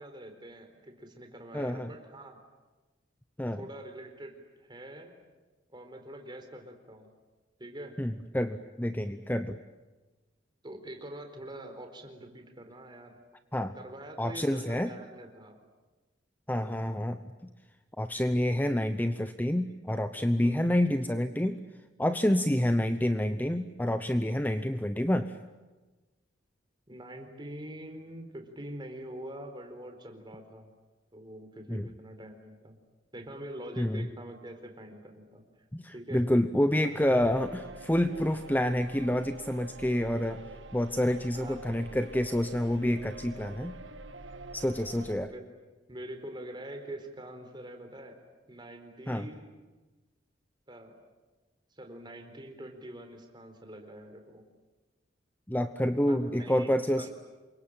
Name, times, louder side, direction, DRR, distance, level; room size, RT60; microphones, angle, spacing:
voice 1, 0.0-2.4 3.6-5.1 5.7-7.1 7.6-7.9 10.6-13.2 13.7-15.6 16.6-16.9 20.4-20.7 22.6-22.7 26.9-30.7 31.1-32.8 33.1-35.4 35.9-36.2 36.8-37.3 41.3-41.6 43.3-44.2 45.1-45.5 45.9-48.2 48.5-49.5 50.7-50.9 51.7-54.4 56.1-57.1, right 1 dB, 25° right, 5 dB, 4.3 m, -45 dB
voice 2, 1.5-1.9 3.4-3.6 8.0-9.6 13.5-13.8 14.2-14.9 16.5-17.2 18.0-21.6 22.0-25.4 31.7-31.9 33.8-34.1 35.7-40.4 40.7-43.7 44.5-45.3 49.1-49.3 55.5-57.1, left 1 dB, 10° left, 9 dB, 0.8 m, -28 dB
sound 1, 37.1-45.1, right 2 dB, 80° right, 1.5 m, -46 dB
28.0 x 23.5 x 9.0 m, 1.2 s
head